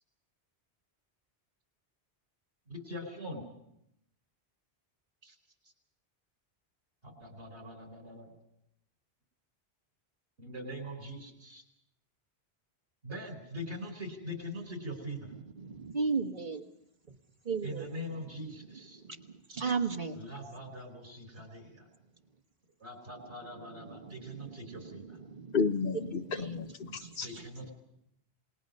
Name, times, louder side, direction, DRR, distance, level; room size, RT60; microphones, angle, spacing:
voice 1, 2.7-3.4 5.2-5.3 7.0-8.3 10.4-11.6 13.0-15.3 17.6-19.0 20.1-21.9 22.8-25.2 27.2-27.7, equal, 75° right, 5.0 m, -42 dB
voice 2, 15.6-16.6 17.4-17.9 18.7-20.2 23.8-25.5 26.2-26.5 26.8-27.7, right 5 dB, 45° right, 1.6 m, -36 dB
voice 3, 25.5-27.3, left 5 dB, 55° left, 1.2 m, -32 dB
28.5 x 20.0 x 5.4 m
omnidirectional pair, 1.1 m